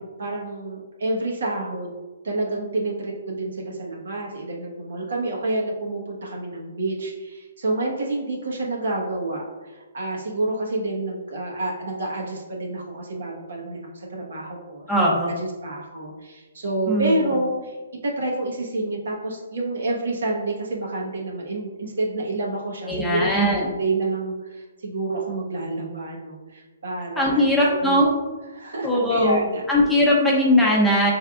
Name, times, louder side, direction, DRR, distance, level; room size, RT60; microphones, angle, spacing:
voice 1, 0.2-1.9 2.2-17.8 18.0-28.0 28.5-29.6, right 2 dB, 75° right, -2 dB, 1.2 m, -28 dB
voice 2, 14.9-15.3 16.9-17.3 22.9-23.7 27.2-28.1 28.8-29.4 29.7-31.1, equal, 5° left, -5 dB, 0.7 m, -19 dB
5.5 x 3.4 x 2.4 m, 1.3 s
hypercardioid pair, 160°, 0 cm